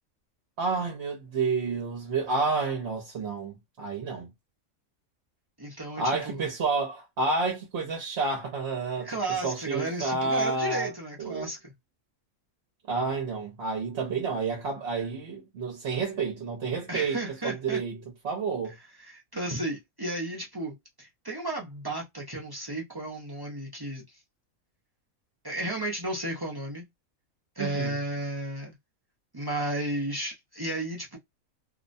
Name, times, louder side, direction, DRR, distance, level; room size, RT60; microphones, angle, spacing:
voice 1, 0.6-4.3 6.0-9.1 9.4-10.9 11.2-11.5 12.9-17.2 17.4-18.0 18.2-18.7 27.6-28.0, right 4 dB, 55° right, 0.9 m, -30 dB
voice 2, 5.6-6.5 9.0-11.7 16.9-17.8 19.0-24.0 25.4-26.9 27.6-28.8 29.3-31.2, right 1 dB, 25° right, 0.5 m, -33 dB
2.7 x 2.1 x 2.5 m
omnidirectional pair, 1.5 m